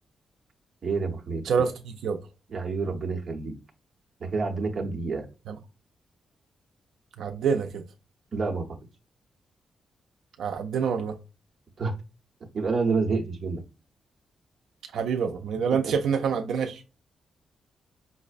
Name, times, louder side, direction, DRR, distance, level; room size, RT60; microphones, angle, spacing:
voice 1, 0.8-1.7 2.5-3.6 4.2-5.3 8.3-8.7 11.8-11.9 12.5-13.6 15.7-15.8, right 4 dB, 40° right, 0.9 m, -28 dB
voice 2, 1.4-2.2 5.5-5.6 7.2-7.8 10.4-11.2 14.9-16.8, right 6 dB, 85° right, 0.4 m, -26 dB
5.4 x 2.0 x 2.4 m
wide cardioid pair, 180°, 0 cm